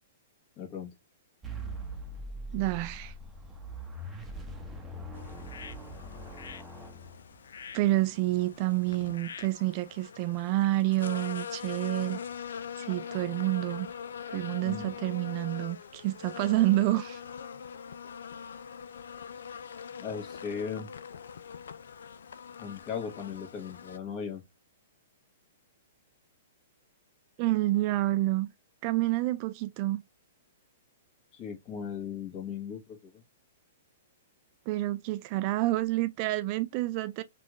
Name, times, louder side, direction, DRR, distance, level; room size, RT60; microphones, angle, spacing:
voice 1, 0.6-0.9 14.6-14.9 20.0-20.9 22.6-24.4 31.3-33.2, left 7 dB, 35° left, 1.4 m, -37 dB
sound 1, 1.4-7.6, right 1 dB, 10° right, 0.8 m, -42 dB
voice 2, 2.5-3.1 7.7-12.2 12.8-13.9 14.3-17.2 27.4-28.5 28.8-30.0 34.7-37.2, right 17 dB, 40° right, 0.3 m, -28 dB
sound 2, 5.1-24.0, left 7 dB, 80° left, 0.3 m, -43 dB
3.5 x 2.4 x 2.9 m
hypercardioid pair, 140°, 0 cm